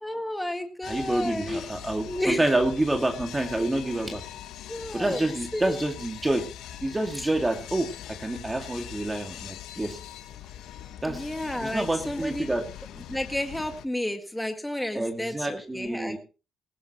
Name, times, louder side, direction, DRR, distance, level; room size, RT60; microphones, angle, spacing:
voice 1, 0.0-1.6 2.1-2.6 4.7-5.3 5.5-5.8 11.1-12.5 13.1-16.2, left 1 dB, 5° left, 5 dB, 1.7 m, -31 dB
sound 1, 0.8-13.9, left 12 dB, 85° left, 1.0 m, -42 dB
voice 2, 0.9-4.2 4.9-6.5 6.8-10.0 11.0-11.3 11.6-12.7 14.9-16.2, right 1 dB, 15° right, 4 dB, 2.0 m, -28 dB
19.0 x 16.0 x 3.0 m, 0.34 s
cardioid pair, 90°, 0 cm